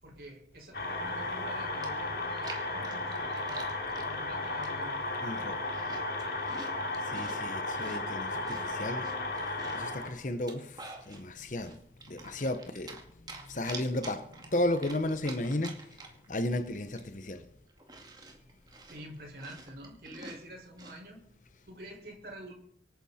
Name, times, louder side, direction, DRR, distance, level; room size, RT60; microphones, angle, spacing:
voice 1, 0.0-3.7 4.0-5.0 18.9-21.2 21.7-22.5, right 1 dB, 60° right, 5.7 m, -47 dB
sound 1, 0.7-10.1, left 2 dB, 60° left, 2.6 m, -34 dB
Chewing mastication, 1.8-4.1 4.6-5.0 5.3-7.4 7.8-9.9 10.3-11.2 11.6-13.0 13.3-16.3 16.6-16.7 16.9-21.0, right 3 dB, 25° right, 2.2 m, -47 dB
voice 2, 5.2-5.6 7.1-9.1 9.7-10.7 11.1-11.7 12.1-13.0 13.5-15.8 16.3-17.4, left 1 dB, 45° left, 0.9 m, -33 dB
25.5 x 9.6 x 4.3 m
head